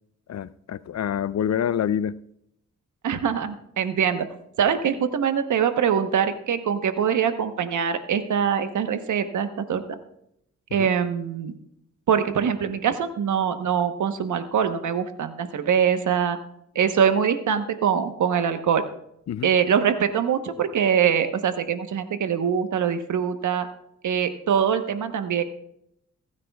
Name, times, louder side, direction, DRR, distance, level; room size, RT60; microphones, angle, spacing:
voice 1, 0.3-2.2 10.7-10.9 19.3-19.5, left 9 dB, 65° left, 0.6 m, -27 dB
voice 2, 3.0-4.3 4.6-10.0 10.7-11.5 12.1-16.4 16.7-18.8 19.4-23.7 24.0-25.4, right 7 dB, 80° right, 1.1 m, -23 dB
22.5 x 9.6 x 2.4 m
supercardioid pair, 45°, 30 cm